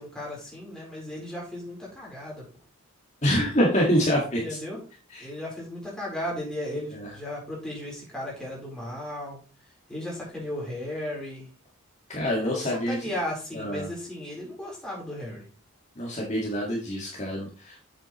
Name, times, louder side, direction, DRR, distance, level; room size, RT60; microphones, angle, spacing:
voice 1, 0.0-2.4 4.4-4.8 5.2-9.4 9.9-11.5 12.4-15.4, left 1 dB, 5° left, -5 dB, 4.1 m, -35 dB
voice 2, 3.2-4.6 5.1-5.3 6.9-7.1 12.1-13.1 13.5-13.9 16.0-17.8, equal, 35° left, -3 dB, 1.9 m, -26 dB
8.1 x 7.4 x 3.1 m, 0.36 s
head